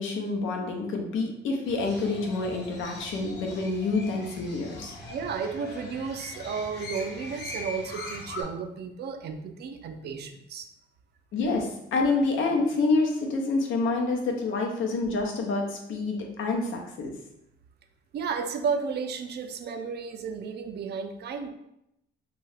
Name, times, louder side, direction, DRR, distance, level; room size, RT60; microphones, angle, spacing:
voice 1, 0.0-4.9 11.3-17.1, left 3 dB, 80° left, 1 dB, 0.6 m, -27 dB
Crow, 1.6-8.4, left 2 dB, 60° left, 0.9 m, -41 dB
voice 2, 5.1-10.7 18.1-21.5, right 5 dB, 55° right, 6 dB, 0.4 m, -33 dB
2.7 x 2.3 x 3.2 m, 0.81 s
cardioid pair, 90°, 20 cm